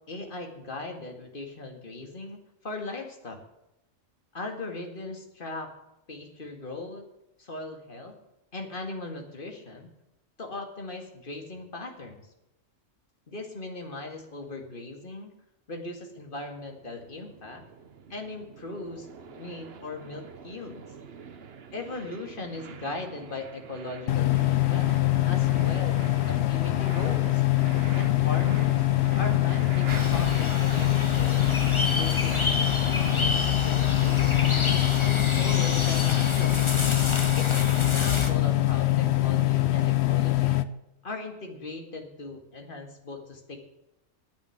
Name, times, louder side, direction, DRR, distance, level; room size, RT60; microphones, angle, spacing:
voice 1, 0.1-3.4 4.3-5.7 6.1-7.1 7.4-8.2 8.5-9.9 10.4-12.2 13.3-15.3 15.7-17.6 18.1-20.8 21.7-24.9 25.3-27.4 27.9-28.9 29.2-31.4 31.9-33.3 33.6-34.6 35.0-36.7 37.4-40.6 41.0-43.6, left 2 dB, 40° left, 3 dB, 2.2 m, -39 dB
sound 1, 16.3-35.2, right 6 dB, 55° right, 1.1 m, -46 dB
sound 2, 24.1-40.6, left 16 dB, 60° left, 0.9 m, -24 dB
sound 3, 29.9-38.3, left 2 dB, 25° left, 1.2 m, -30 dB
10.0 x 8.6 x 9.5 m, 0.89 s
omnidirectional pair, 1.3 m